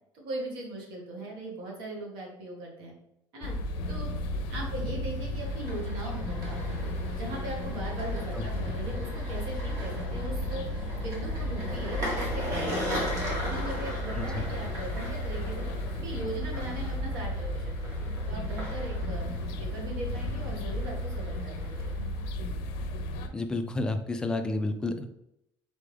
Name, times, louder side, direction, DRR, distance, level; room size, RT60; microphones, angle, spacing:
voice 1, 0.1-3.0 3.3-3.5 3.9-4.1 4.5-13.0 13.4-15.6 15.9-19.3 19.6-21.9, right 1 dB, 65° right, 0 dB, 1.5 m, -39 dB
sound 1, 3.4-23.3, left 1 dB, 85° left, 0.6 m, -34 dB
sound 2, 5.3-22.3, equal, 40° right, 1.5 m, -39 dB
voice 2, 8.3-8.7 14.2-14.4 23.3-25.1, left 2 dB, 10° left, 6 dB, 0.3 m, -31 dB
4.1 x 3.4 x 3.4 m, 0.81 s
cardioid pair, 175°, 9 cm